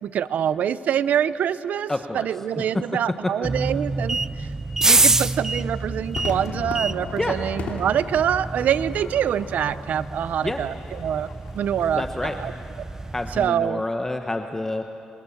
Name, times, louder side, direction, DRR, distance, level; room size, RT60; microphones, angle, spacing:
voice 1, 0.0-4.5 4.8-11.3 11.5-12.5 13.3-13.8, right 9 dB, 80° right, 16 dB, 0.7 m, -25 dB
voice 2, 1.9-2.3 7.2-7.3 10.4-10.6 12.0-12.3 13.1-14.8, left 2 dB, 15° left, 6 dB, 1.1 m, -28 dB
sound 1, 3.4-13.5, right 2 dB, 20° right, 0.7 m, -27 dB
Crowd / Fireworks, 6.2-12.7, left 5 dB, 80° left, 2.9 m, -38 dB
30.0 x 25.5 x 7.2 m, 2.9 s
cardioid pair, 95°, 3 cm